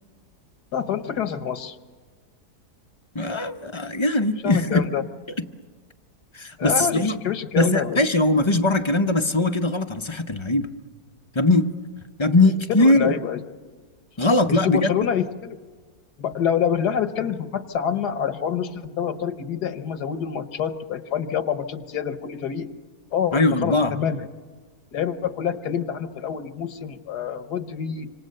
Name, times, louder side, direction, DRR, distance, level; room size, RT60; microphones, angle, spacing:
voice 1, 0.7-1.8 4.4-5.0 6.6-8.1 12.8-13.4 14.5-15.6 16.2-22.7 23.1-24.3 24.9-28.1, left 8 dB, 80° left, 1.7 m, -27 dB
voice 2, 3.1-4.8 6.3-7.2 7.6-10.7 11.3-11.7 12.2-13.2 14.2-14.9 23.3-24.0, left 2 dB, 25° left, 0.6 m, -20 dB
26.5 x 26.5 x 6.6 m
omnidirectional pair, 1.7 m